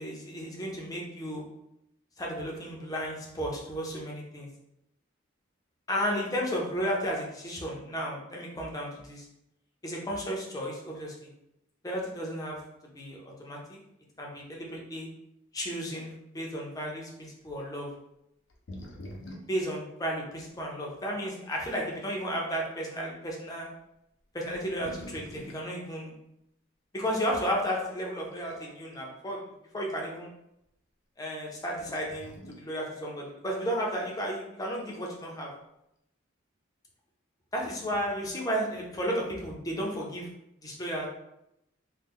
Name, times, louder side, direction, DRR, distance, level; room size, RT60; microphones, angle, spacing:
voice 1, 0.0-1.4 2.2-4.5 5.9-9.3 9.8-11.3 11.8-12.6 12.9-13.8 14.2-15.1 15.5-16.1 16.3-17.9 19.5-23.7 24.3-26.1 26.9-29.4 29.7-30.3 31.2-35.5 37.5-40.3 40.6-41.1, equal, 20° left, -2 dB, 0.6 m, -33 dB
sound 1, 17.6-17.7 18.5-19.6 20.5-20.6 21.3-21.9 22.7-22.9 23.8-23.9 24.4-25.7 27.4-27.5 28.3-29.0 29.4-29.5 31.8-32.7 34.8-35.3, left 1 dB, 70° left, 0.6 m, -46 dB
3.2 x 2.1 x 3.5 m, 0.82 s
head